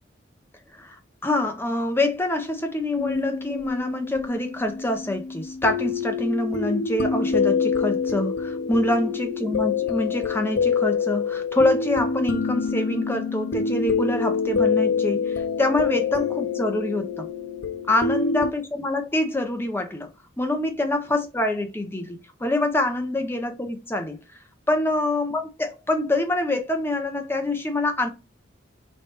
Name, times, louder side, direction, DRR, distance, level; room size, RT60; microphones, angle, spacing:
voice 1, 0.7-17.3 17.9-20.1 20.4-24.2 24.7-28.1, left 1 dB, 10° left, 0.6 m, -25 dB
sound 1, 3.0-18.5, left 5 dB, 65° left, 0.4 m, -26 dB
4.5 x 3.2 x 2.9 m
head